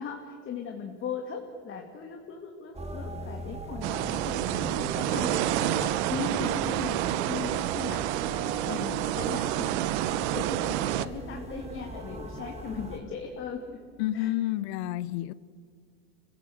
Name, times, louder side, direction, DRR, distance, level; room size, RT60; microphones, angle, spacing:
voice 1, 0.0-5.3 5.6-8.0 8.6-13.8 14.1-14.3, left 6 dB, 35° left, 2.4 m, -38 dB
sound 1, 2.7-13.0, right 2 dB, 15° right, 3.0 m, -39 dB
sound 2, 3.8-11.1, right 14 dB, 65° right, 0.9 m, -29 dB
voice 2, 14.0-15.3, left 14 dB, 60° left, 0.8 m, -29 dB
25.5 x 16.0 x 8.0 m
hypercardioid pair, 105°, 36 cm